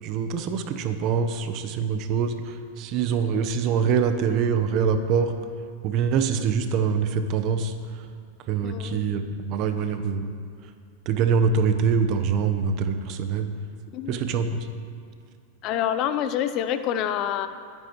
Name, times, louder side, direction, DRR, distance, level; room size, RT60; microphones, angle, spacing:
voice 1, 0.0-5.3 5.8-7.7 8.5-10.3 11.1-13.5 14.1-14.7, right 6 dB, 45° right, 8 dB, 1.0 m, -24 dB
voice 2, 8.6-9.1 13.9-14.2 15.6-17.5, left 10 dB, 45° left, 10 dB, 0.7 m, -27 dB
21.0 x 9.1 x 3.2 m, 2.2 s
hypercardioid pair, 110°, 0 cm